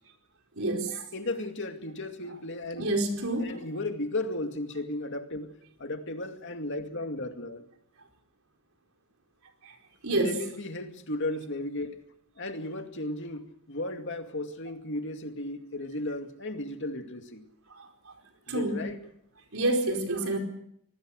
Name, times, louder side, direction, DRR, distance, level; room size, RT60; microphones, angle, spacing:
voice 1, 0.6-1.1 2.8-3.5 10.0-10.4 18.5-18.8 19.5-20.4, right 2 dB, 70° right, 4.5 m, -27 dB
voice 2, 1.1-2.9 3.4-5.5 5.8-7.6 10.1-12.0 12.4-17.4 18.5-19.0, left 2 dB, 55° left, 2.4 m, -35 dB
26.0 x 19.5 x 6.5 m
head